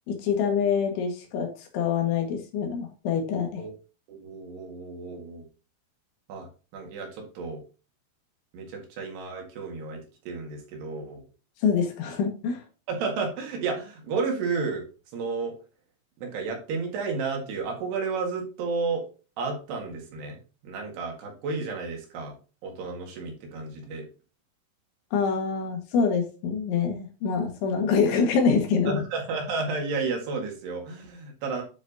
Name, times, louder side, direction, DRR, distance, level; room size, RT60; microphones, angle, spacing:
voice 1, 0.1-3.6 11.6-12.6 25.1-29.0, left 6 dB, 80° left, 3 dB, 4.0 m, -25 dB
voice 2, 4.1-5.5 6.3-7.6 8.5-11.2 12.9-14.9 15.1-15.6 16.2-19.1 19.4-22.4 22.6-24.1 28.9-31.6, right 4 dB, 65° right, 2 dB, 3.6 m, -32 dB
10.0 x 5.9 x 2.8 m, 0.34 s
omnidirectional pair, 5.4 m